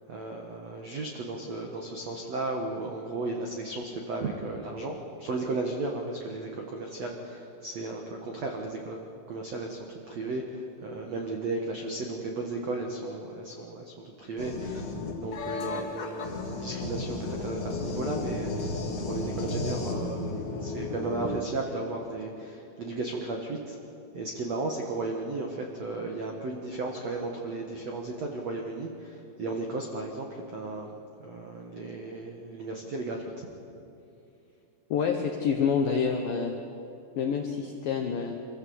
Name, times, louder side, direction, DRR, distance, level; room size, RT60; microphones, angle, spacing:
voice 1, 0.1-9.0 9.3-14.9 15.1-18.7 19.1-23.8 24.1-33.5, right 2 dB, 90° right, 1 dB, 1.4 m, -35 dB
sound 1, 14.4-21.4, left 3 dB, 40° left, 2.0 m, -34 dB
voice 2, 34.9-36.5 37.2-38.3, left 6 dB, 80° left, 3 dB, 2.0 m, -27 dB
25.0 x 16.0 x 8.0 m, 2.7 s
omnidirectional pair, 5.6 m